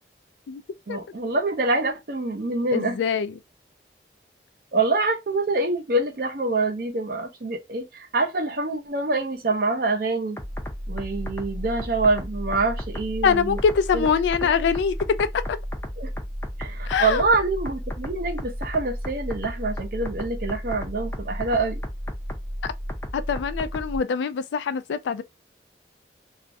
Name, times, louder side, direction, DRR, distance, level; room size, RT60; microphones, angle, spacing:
voice 1, 0.9-3.0 4.7-10.4 10.9-13.6 13.9-14.1 16.0-16.1 16.6-21.8, right 3 dB, 55° right, 0.6 m, -25 dB
voice 2, 2.7-3.3 13.2-15.6 16.9-17.3 22.6-22.7 23.1-25.2, left 6 dB, 85° left, 0.3 m, -24 dB
sound 1, 10.4-24.0, equal, 15° left, 0.4 m, -33 dB
2.4 x 2.0 x 2.6 m
head